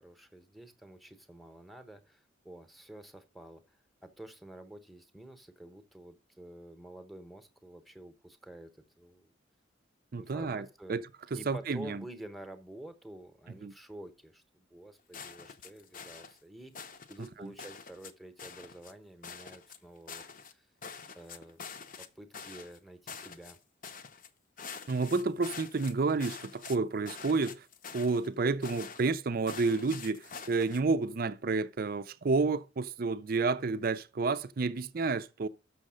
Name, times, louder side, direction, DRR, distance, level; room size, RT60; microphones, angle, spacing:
voice 1, 0.0-9.3 10.2-11.0 11.3-20.7 21.1-21.6 22.0-23.6, right 1 dB, ahead, 0.9 m, -49 dB
voice 2, 10.1-11.0 11.5-12.0 13.6-13.7 24.9-27.7 27.9-35.5, right 4 dB, 50° right, 0.5 m, -30 dB
sound 1, 15.1-16.4 16.7-17.3 17.6-18.1 18.4-18.9 19.2-20.5 20.8-22.1 22.3-22.8 23.1-23.6 23.8-24.3 24.6-26.8 27.1-28.3 28.6-29.1 29.5-30.8, left 6 dB, 45° left, 0.7 m, -46 dB
6.5 x 6.3 x 6.3 m
head